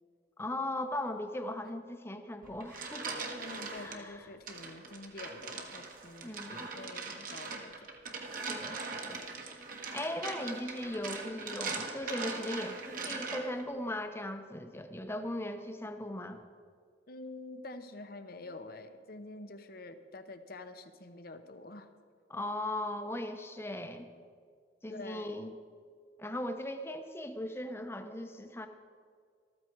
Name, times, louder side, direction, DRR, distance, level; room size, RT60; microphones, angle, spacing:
voice 1, 0.4-3.4 3.8-4.2 6.2-6.7 8.4-9.2 9.9-16.4 22.3-24.1 24.8-25.5 26.2-28.7, left 1 dB, 15° left, 7 dB, 0.8 m, -38 dB
sound 1, 2.4-4.0 4.5-13.7, right 4 dB, 45° right, 1.5 m, -41 dB
voice 2, 3.3-7.9 17.1-21.9 24.9-25.4, left 2 dB, 50° left, 9 dB, 0.9 m, -47 dB
14.0 x 14.0 x 4.6 m, 2.1 s
head